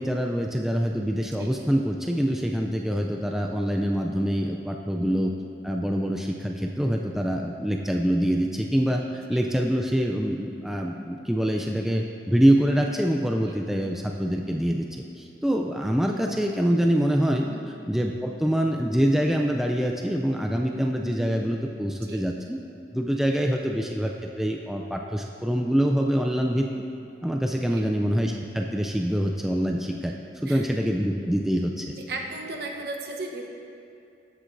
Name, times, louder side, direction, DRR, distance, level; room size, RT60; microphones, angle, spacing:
voice 1, 0.0-5.3 5.6-17.5 17.9-22.6 22.9-26.6 27.2-30.1 30.4-32.0, equal, ahead, 1 dB, 0.3 m, -25 dB
voice 2, 30.5-30.8 32.1-33.5, right 2 dB, 60° right, 2 dB, 0.8 m, -36 dB
13.0 x 7.5 x 2.6 m, 2.7 s
head